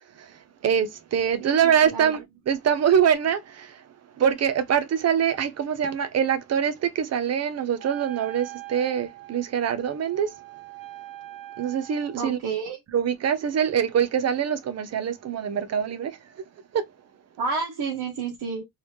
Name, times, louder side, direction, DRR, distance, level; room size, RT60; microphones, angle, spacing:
voice 1, 0.6-3.8 4.2-10.3 11.6-12.4 12.9-16.2 16.7-16.8, right 8 dB, 40° right, 0.5 m, -24 dB
voice 2, 1.4-2.2 12.2-12.8 17.4-18.6, right 5 dB, 80° right, 1.1 m, -30 dB
Wind instrument woodwind instrument, 7.8-12.3, right 17 dB, 60° right, 0.8 m, -42 dB
3.1 x 2.8 x 3.2 m
cardioid pair, 170°, 39 cm